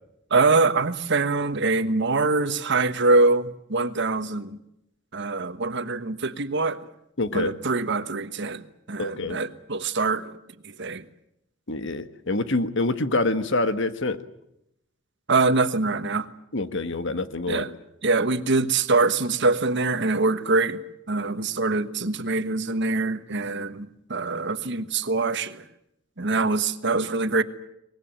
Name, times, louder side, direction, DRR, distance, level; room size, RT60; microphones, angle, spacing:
voice 1, 0.3-4.6 5.1-6.8 7.3-10.4 10.6-11.0 15.3-16.3 17.5-17.7 18.0-20.8 21.1-25.6 26.2-27.4, right 3 dB, 60° right, 1.3 m, -24 dB
voice 2, 7.2-7.5 9.0-9.4 11.7-14.2 16.5-17.7, left 2 dB, 65° left, 1.5 m, -26 dB
24.0 x 20.5 x 8.9 m
head